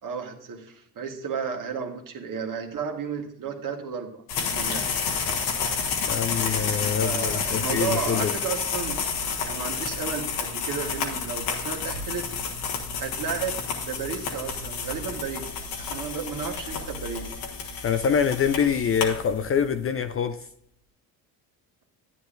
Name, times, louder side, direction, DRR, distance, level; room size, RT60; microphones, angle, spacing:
voice 1, 0.0-4.9 7.0-9.0 9.5-12.3 13.0-15.5 15.8-17.3, right 6 dB, 45° right, 3 dB, 1.7 m, -33 dB
sound 1, 4.3-19.7, left 5 dB, 85° left, 1.7 m, -30 dB
voice 2, 6.1-8.3 17.8-20.4, left 7 dB, 30° left, 10 dB, 0.5 m, -25 dB
11.0 x 9.7 x 2.6 m, 0.69 s
supercardioid pair, 70°, 44 cm